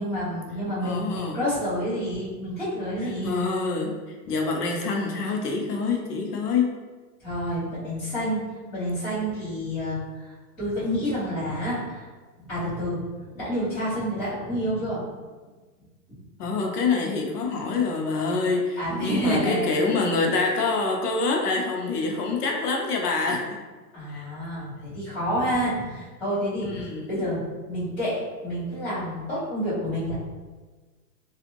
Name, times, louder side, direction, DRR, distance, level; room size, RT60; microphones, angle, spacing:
voice 1, 0.0-3.3 7.2-12.1 12.4-15.0 18.8-19.7 23.9-30.1, equal, 5° left, -22 dB, 0.6 m, -29 dB
voice 2, 0.8-1.4 3.2-3.9 4.3-6.7 16.4-23.6 24.1-24.3 26.6-27.3, left 4 dB, 70° left, 0 dB, 0.7 m, -26 dB
2.5 x 2.4 x 2.9 m, 1.3 s
hypercardioid pair, 180°, 49 cm